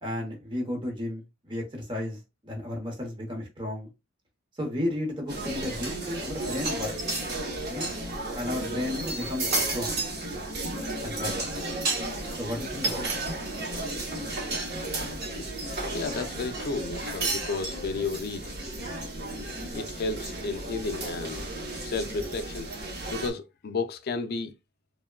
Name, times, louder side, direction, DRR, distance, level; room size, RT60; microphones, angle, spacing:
voice 1, 0.0-3.9 4.6-6.9 7.7-7.9 8.3-10.0 11.0-11.5 12.4-13.1, left 1 dB, 25° right, 0.9 m, -33 dB
sound 1, 5.3-23.3, right 2 dB, 55° right, 0.8 m, -33 dB
voice 2, 15.9-18.5 19.7-21.5 21.8-22.7 23.1-24.5, left 3 dB, 50° left, 0.4 m, -32 dB
3.4 x 2.1 x 2.2 m
head